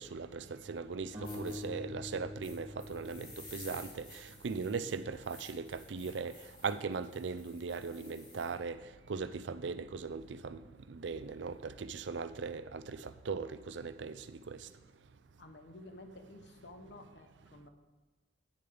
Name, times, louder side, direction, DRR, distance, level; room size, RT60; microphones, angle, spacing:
voice 1, 0.0-10.6 10.9-14.7, right 4 dB, 85° right, 0.5 m, -39 dB
sound 1, 1.1-4.3, left 2 dB, 30° right, 3.2 m, -45 dB
sound 2, 1.2-1.6 2.4-8.6, left 2 dB, 45° left, 2.5 m, -54 dB
voice 2, 15.4-17.7, left 1 dB, 70° left, 1.1 m, -52 dB
10.0 x 9.4 x 3.5 m
head